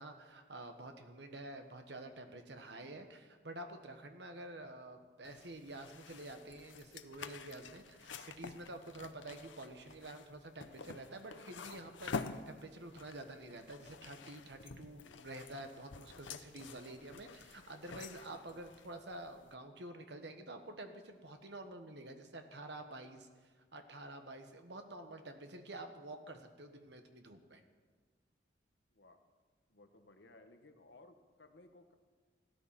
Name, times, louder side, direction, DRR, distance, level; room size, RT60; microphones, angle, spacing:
voice 1, 0.0-27.6, right 1 dB, 65° right, 6 dB, 1.4 m, -49 dB
sound 1, 5.2-19.5, left 4 dB, 85° left, 0.8 m, -49 dB
voice 2, 29.7-32.0, left 2 dB, 65° left, 6 dB, 1.3 m, -60 dB
15.5 x 13.0 x 5.8 m, 1.4 s
head